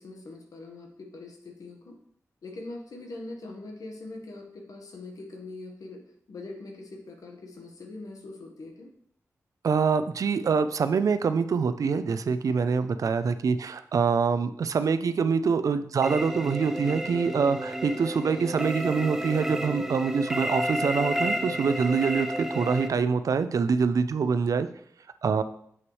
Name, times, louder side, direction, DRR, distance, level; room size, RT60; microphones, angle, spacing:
voice 1, 0.0-2.0 2.4-6.0 6.3-8.9, left 2 dB, 90° left, 3 dB, 1.2 m, -42 dB
voice 2, 9.6-24.7 25.2-25.4, right 5 dB, 75° right, 11 dB, 0.4 m, -25 dB
sound 1, 16.0-22.9, equal, 5° right, 0.7 m, -31 dB
7.9 x 5.9 x 3.1 m, 0.67 s
wide cardioid pair, 90°, 6 cm